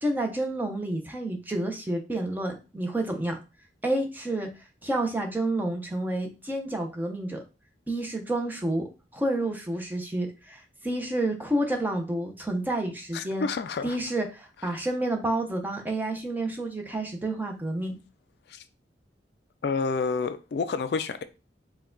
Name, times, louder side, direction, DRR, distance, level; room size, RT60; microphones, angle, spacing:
voice 1, 0.0-3.4 3.8-4.5 4.8-7.4 7.9-8.9 9.1-13.5 13.8-18.0, right 1 dB, 10° right, 0.7 m, -29 dB
voice 2, 13.1-14.0 18.5-18.6 19.6-21.2, left 4 dB, 60° left, 0.3 m, -29 dB
4.5 x 2.3 x 3.8 m
head